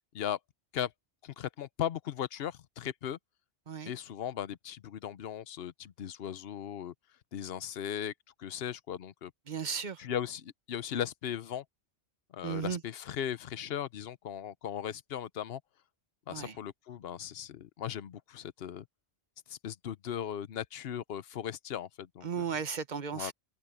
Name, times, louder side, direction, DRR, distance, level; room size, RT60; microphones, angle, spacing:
voice 1, 1.2-3.2 3.8-6.9 7.3-8.1 8.4-9.3 10.0-11.6 12.3-15.6 16.3-18.9 19.5-22.4 23.1-23.3, left 9 dB, 60° left, 0.9 m, -37 dB
voice 2, 9.5-10.0 12.4-12.8 16.3-16.6 22.2-23.3, right 6 dB, 45° right, 1.1 m, -35 dB
open air
omnidirectional pair, 1.2 m